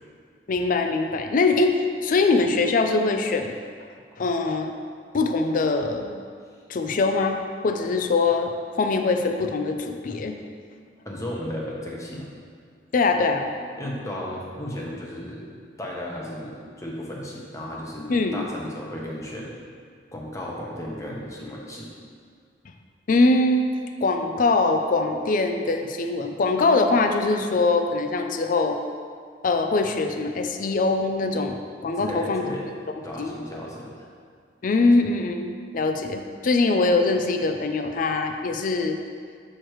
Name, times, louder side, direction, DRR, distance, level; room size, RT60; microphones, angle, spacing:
voice 1, 0.5-3.5 4.2-4.7 5.1-6.1 6.7-10.4 12.9-13.5 18.1-18.5 23.1-23.6 24.0-28.8 29.4-32.4 33.2-33.3 34.6-39.0, left 3 dB, 50° left, 6 dB, 0.4 m, -22 dB
voice 2, 11.0-12.3 13.7-15.5 15.8-19.6 20.1-21.9 32.0-32.7 33.0-34.1, left 1 dB, 20° left, -3 dB, 0.9 m, -34 dB
6.5 x 6.1 x 3.1 m, 2.1 s
head